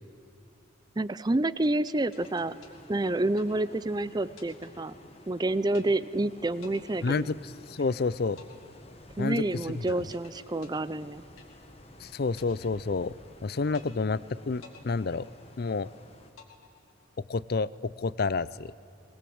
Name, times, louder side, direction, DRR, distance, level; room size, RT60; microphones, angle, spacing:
voice 1, 1.0-2.5 2.9-5.0 5.3-7.3 9.2-11.2, right 2 dB, 20° right, 16 dB, 0.4 m, -28 dB
sound 1, 1.6-3.9 4.4-5.4 5.7-6.3 6.6-7.9 8.4-11.9 12.4-13.4 13.7-14.3 14.6-15.9 16.4-17.4, left 5 dB, 80° left, 2.3 m, -55 dB
sound 2, 2.2-16.3, left 1 dB, 30° left, 1.4 m, -53 dB
voice 2, 7.0-7.3 7.7-8.4 9.2-9.4 12.0-13.1 13.4-14.2 14.5-15.3 15.6-15.9 17.3-18.7, left 4 dB, 45° left, 19 dB, 0.4 m, -29 dB
21.5 x 20.5 x 7.9 m, 2.7 s
head